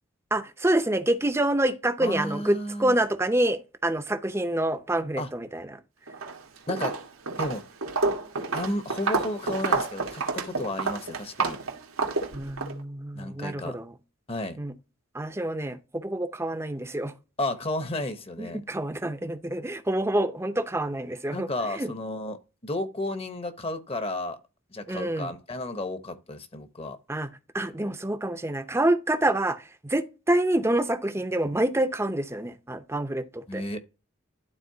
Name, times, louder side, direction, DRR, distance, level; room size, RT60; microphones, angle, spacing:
voice 1, 0.3-5.6 12.3-13.9 14.6-14.7 15.1-17.1 18.4-21.5 21.8-21.9 24.9-25.3 27.1-27.3 27.5-33.6, right 1 dB, 10° right, 0.6 m, -27 dB
voice 2, 2.0-3.0 5.2-5.3 6.7-6.9 7.4-7.6 8.5-11.6 13.1-13.8 14.3-14.6 17.4-18.6 21.3-24.4 24.7-27.0 33.5-33.8, left 1 dB, 30° left, 0.9 m, -32 dB
Walk footsteps, 6.1-6.4 6.7-12.7, right 3 dB, 90° right, 1.6 m, -29 dB
12.0 x 4.1 x 2.7 m
head